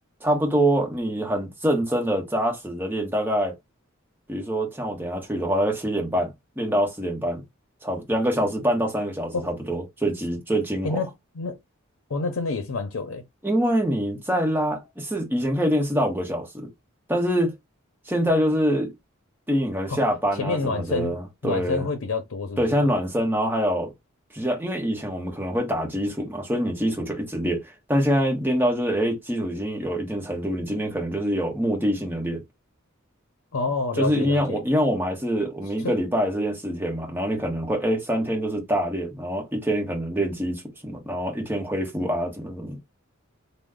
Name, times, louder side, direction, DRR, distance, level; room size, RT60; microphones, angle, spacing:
voice 1, 0.2-3.5 4.3-7.4 7.8-11.0 13.4-16.7 17.1-17.5 18.1-18.9 19.5-21.9 22.6-23.9 24.3-32.4 34.0-42.8, equal, 10° right, 1.1 m, -25 dB
voice 2, 10.8-11.6 12.1-13.2 19.9-20.0 20.4-21.2 21.4-22.8 33.5-34.6 35.8-36.0, left 3 dB, 80° left, 0.7 m, -28 dB
3.1 x 2.1 x 3.7 m
head